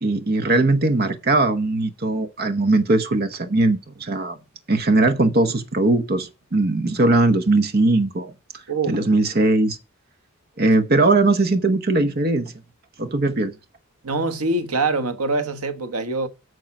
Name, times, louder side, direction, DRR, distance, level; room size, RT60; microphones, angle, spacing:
voice 1, 0.0-4.4 4.7-8.3 8.9-9.8 10.6-12.5 13.0-13.5, right 2 dB, 45° right, 0.9 m, -19 dB
voice 2, 8.7-9.0 14.0-16.3, right 3 dB, 90° right, 1.2 m, -24 dB
9.0 x 6.4 x 5.9 m
head